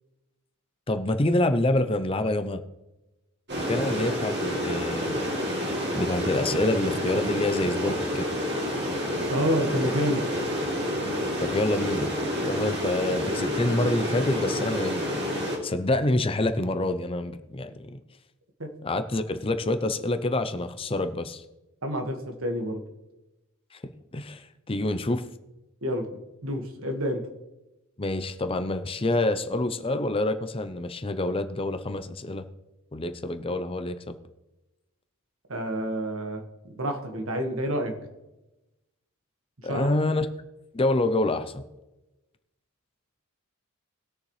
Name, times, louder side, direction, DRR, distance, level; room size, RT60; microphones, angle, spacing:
voice 1, 0.9-2.6 3.6-5.1 5.9-8.3 11.4-12.1 12.4-18.0 18.8-21.4 23.7-25.3 28.0-32.4 32.9-34.2 39.6-40.3 40.7-41.6, left 2 dB, 25° left, 10 dB, 0.6 m, -27 dB
sound 1, 3.5-15.6, equal, 50° right, 2.7 m, -29 dB
voice 2, 9.3-10.2 18.6-18.7 21.8-22.8 25.8-26.1 26.4-27.2 35.5-37.9 39.7-39.9, equal, 70° right, 4 dB, 1.7 m, -28 dB
20.5 x 6.8 x 3.2 m, 1.0 s
head